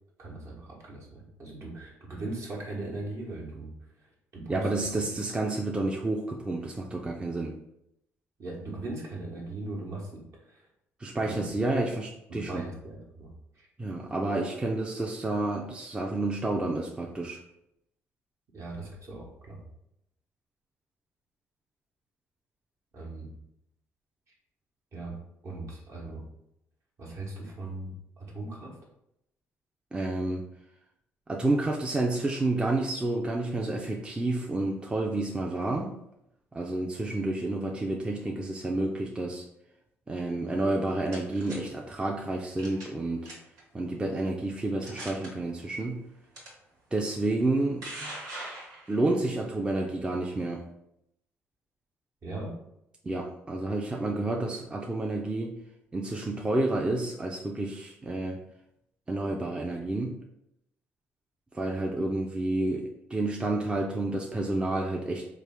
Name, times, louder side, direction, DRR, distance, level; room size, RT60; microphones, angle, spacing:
voice 1, 0.2-5.3 8.4-10.7 11.2-11.5 12.3-13.7 18.5-19.6 22.9-23.3 24.9-25.2 25.4-26.2 27.0-28.8 52.2-52.6, right 2 dB, 55° right, -2 dB, 1.1 m, -39 dB
voice 2, 4.5-7.5 11.0-12.6 13.8-17.4 29.9-30.4 31.3-36.0 36.5-39.4 40.1-43.3 43.7-46.0 46.9-48.1 48.9-50.6 53.0-55.6 55.9-58.4 59.1-60.2 61.5-65.3, right 2 dB, 15° right, 0 dB, 0.4 m, -30 dB
sound 1, 40.7-41.6 42.6-43.0 43.2-43.6 44.2-44.3 44.8-45.3 46.3-46.5 47.4-49.2, right 1 dB, 80° right, 1.3 m, -41 dB
3.3 x 2.4 x 3.5 m, 0.81 s
supercardioid pair, 80°, 6 cm